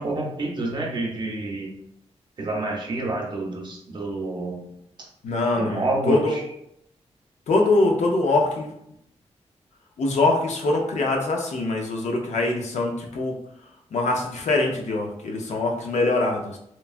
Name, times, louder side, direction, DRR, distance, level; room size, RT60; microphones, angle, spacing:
voice 1, 0.0-1.7 2.4-4.7 5.0-5.1 5.5-6.4, right 2 dB, 40° right, 0 dB, 0.6 m, -28 dB
voice 2, 5.2-6.4 7.5-8.7 10.0-13.3 13.9-16.6, left 2 dB, 90° left, 1 dB, 0.5 m, -23 dB
3.0 x 2.2 x 2.4 m, 0.77 s
wide cardioid pair, 140°, 12 cm